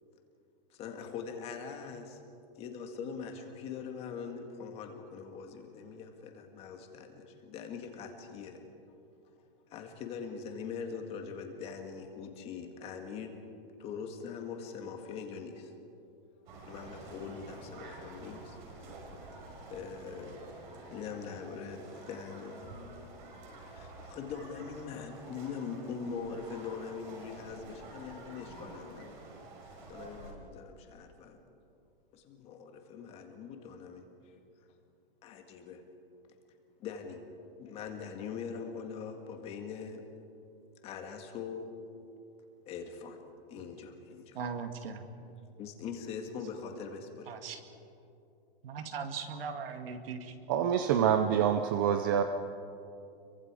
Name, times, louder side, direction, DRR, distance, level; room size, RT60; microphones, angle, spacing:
voice 1, 0.7-2.2 2.6-8.6 9.7-13.3 13.8-15.7 16.6-18.9 19.3-19.4 19.7-20.4 20.9-23.4 23.7-29.2 29.9-31.4 32.1-34.1 35.2-35.8 36.8-37.2 37.6-40.0 40.8-41.7 42.7-43.2 43.5-44.5 45.6-47.3, left 6 dB, 20° left, 4 dB, 1.7 m, -42 dB
sound 1, 16.5-30.3, right 2 dB, 55° right, 5.7 m, -49 dB
voice 2, 44.3-45.0 47.3-47.6 48.6-50.3 50.8-50.9, right 5 dB, 70° right, 6 dB, 2.4 m, -39 dB
voice 3, 50.5-52.2, right 9 dB, 20° right, 7 dB, 0.4 m, -26 dB
30.0 x 24.0 x 4.9 m, 2.7 s
supercardioid pair, 180°, 30 cm